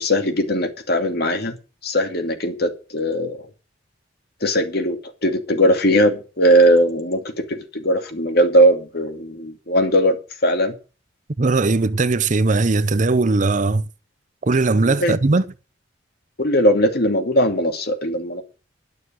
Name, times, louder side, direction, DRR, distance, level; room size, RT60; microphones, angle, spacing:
voice 1, 0.0-1.6 1.8-3.4 4.4-7.2 7.5-10.2 10.4-10.7 14.8-15.1 16.4-18.4, equal, 55° left, 2.6 m, -19 dB
voice 2, 11.4-13.9 14.4-15.5, right 3 dB, 40° right, 0.6 m, -19 dB
11.5 x 6.9 x 8.9 m
head